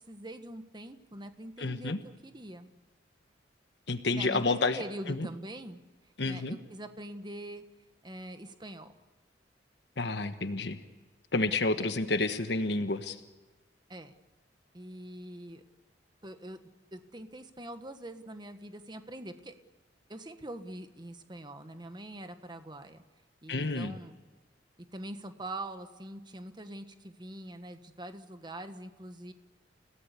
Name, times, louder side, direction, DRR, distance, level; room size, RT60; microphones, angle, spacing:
voice 1, 0.1-2.0 2.2-2.7 4.1-5.8 6.3-7.6 8.0-8.9 11.8-11.9 13.9-14.1 14.7-15.6 16.2-16.6 16.9-19.5 20.1-23.0 23.4-24.2 24.9-29.3, right 1 dB, 25° right, 8 dB, 1.4 m, -43 dB
voice 2, 1.6-2.0 3.9-5.3 6.2-6.6 10.0-10.8 11.3-13.2 23.5-23.9, left 3 dB, 65° left, 9 dB, 1.3 m, -30 dB
30.0 x 17.5 x 8.4 m, 1.2 s
head